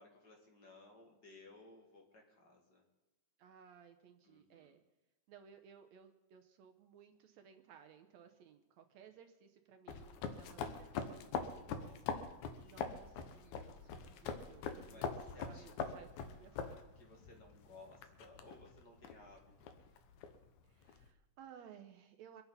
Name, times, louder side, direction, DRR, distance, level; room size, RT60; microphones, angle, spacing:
voice 1, 0.0-2.8 4.2-4.8 11.5-12.4 14.9-15.7 17.0-19.7, left 2 dB, 35° left, 1 dB, 2.3 m, -59 dB
voice 2, 3.4-4.8 5.3-11.8 12.6-16.8 20.6-22.4, right 8 dB, 70° right, 6 dB, 1.8 m, -60 dB
sound 1, 9.9-21.1, left 6 dB, 70° left, 2.4 m, -44 dB
24.5 x 8.2 x 5.6 m, 1.0 s
omnidirectional pair, 3.7 m